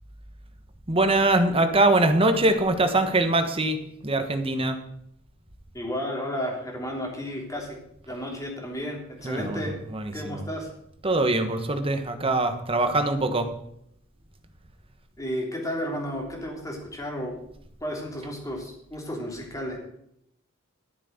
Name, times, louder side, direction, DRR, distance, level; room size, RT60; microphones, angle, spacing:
voice 1, 0.9-4.8 9.2-9.7 9.9-10.4 11.0-13.5, right 2 dB, 25° right, 7 dB, 1.3 m, -23 dB
voice 2, 5.7-7.8 8.1-9.8 10.1-10.7 15.2-17.3 17.8-19.8, equal, 15° left, 0 dB, 3.2 m, -32 dB
12.5 x 7.5 x 6.6 m, 0.75 s
head